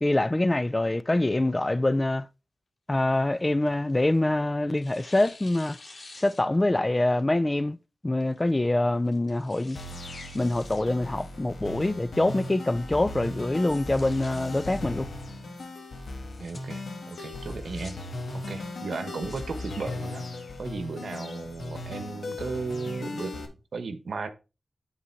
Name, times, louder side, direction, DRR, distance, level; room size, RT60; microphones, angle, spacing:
voice 1, 0.0-2.3 2.9-5.8 6.2-7.8 8.0-9.8 10.3-15.1, left 2 dB, 25° left, 0.5 m, -25 dB
Tearing, 2.9-4.3 4.7-6.8 7.2-7.3 8.2-8.5 9.0-10.8 11.2-11.3 11.9-12.3 12.7-12.8 13.1-13.2 13.5-14.8 16.1-16.6 17.4-17.9 18.9-19.4, left 2 dB, 55° left, 2.6 m, -49 dB
sound 1, 9.8-23.5, left 2 dB, 75° left, 1.7 m, -37 dB
voice 2, 16.4-18.0 18.3-20.2 20.6-24.3, right 4 dB, 80° right, 1.1 m, -35 dB
9.8 x 4.2 x 4.5 m
cardioid pair, 50°, 0 cm